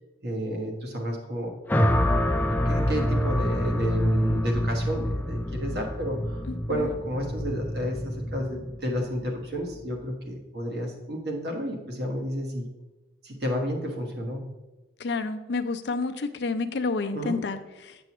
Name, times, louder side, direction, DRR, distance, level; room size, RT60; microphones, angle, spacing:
voice 1, 0.2-1.6 2.6-12.7 13.2-14.5 17.1-17.4, equal, 60° right, 1 dB, 1.3 m, -31 dB
sound 1, 1.7-10.0, equal, 10° left, 0.3 m, -27 dB
voice 2, 6.5-6.9 15.0-18.0, left 3 dB, 70° left, 8 dB, 0.5 m, -30 dB
7.7 x 6.8 x 3.0 m, 1.1 s
head